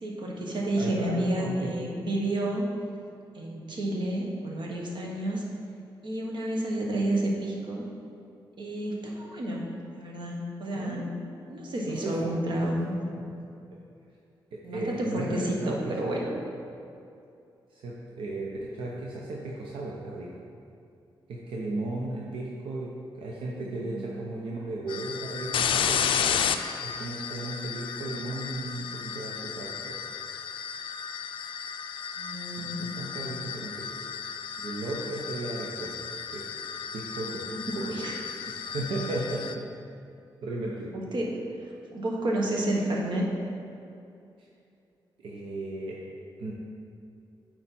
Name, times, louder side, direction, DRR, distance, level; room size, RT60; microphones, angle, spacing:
voice 1, 0.0-2.6 3.3-5.4 6.0-7.8 8.6-9.6 10.0-11.1 11.5-13.0 14.6-16.3 23.6-24.0 32.2-32.8 37.9-38.1 40.9-41.3 41.9-43.3, right 1 dB, 65° right, -2 dB, 1.4 m, -30 dB
voice 2, 0.7-1.7 10.8-11.1 11.8-12.6 14.5-16.1 17.7-20.3 21.3-22.9 23.1-26.5 26.8-30.0 32.6-33.9 34.6-36.0 36.3-36.4 36.9-38.1 38.6-39.6 40.4-40.9 45.2-46.0 46.4-46.5, right 2 dB, 90° right, -3 dB, 0.8 m, -35 dB
sound 1, 24.9-39.5, left 7 dB, 80° left, 0.4 m, -33 dB
8.7 x 4.3 x 4.3 m, 2.6 s
cardioid pair, 90°, 9 cm